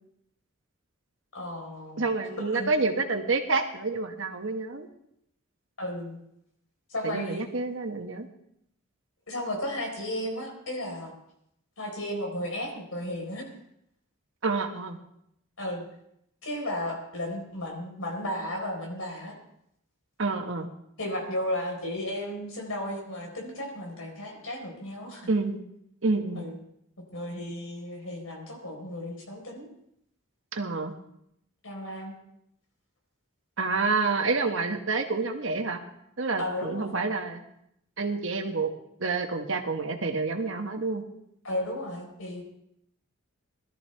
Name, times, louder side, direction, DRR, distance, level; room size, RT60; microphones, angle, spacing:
voice 1, 1.3-2.1 2.3-2.7 5.8-6.2 6.9-7.4 9.3-11.1 11.8-13.5 15.6-15.8 16.4-19.4 21.0-25.3 26.4-26.6 27.1-29.7 31.6-32.2 36.4-36.9 41.4-42.4, left 1 dB, 80° left, 1 dB, 4.4 m, -34 dB
voice 2, 2.0-4.9 7.0-8.3 14.4-15.0 20.2-20.7 25.3-25.6 26.0-26.4 30.5-31.0 33.6-35.8 36.2-37.4 38.0-38.7 39.0-41.0, right 3 dB, 60° right, 5 dB, 1.3 m, -28 dB
20.5 x 13.0 x 3.4 m, 0.75 s
head